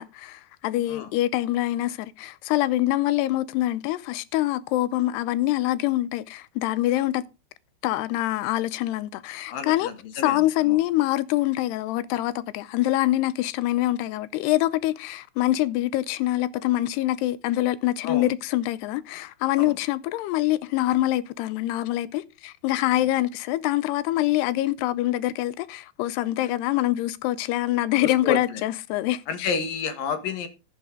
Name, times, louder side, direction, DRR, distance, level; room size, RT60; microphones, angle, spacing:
voice 1, 0.0-7.2 7.8-10.0 10.2-29.5, left 15 dB, 80° left, 2.7 m, -25 dB
voice 2, 9.5-10.8 18.0-18.3 19.6-19.7 28.0-28.6 29.3-30.5, left 5 dB, 60° left, 2.9 m, -31 dB
12.0 x 10.5 x 3.8 m
omnidirectional pair, 5.0 m